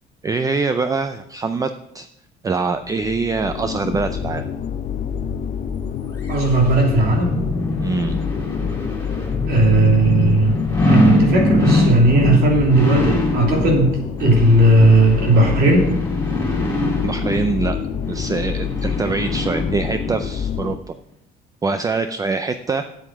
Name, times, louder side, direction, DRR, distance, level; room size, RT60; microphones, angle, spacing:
voice 1, 0.2-2.1 2.4-4.5 7.8-8.2 17.0-17.8 18.1-20.9 21.6-22.8, right 4 dB, 20° right, 10 dB, 0.5 m, -24 dB
sound 1, 2.8-20.8, left 7 dB, 45° left, 0.7 m, -27 dB
sound 2, 6.3-20.2 20.6-20.7, left 1 dB, 15° left, 3.8 m, -23 dB
voice 2, 6.3-7.4 9.5-10.6 10.8-15.9, right 2 dB, 65° right, 0 dB, 3.1 m, -16 dB
8.1 x 7.9 x 6.0 m, 0.81 s
cardioid pair, 110°, 17 cm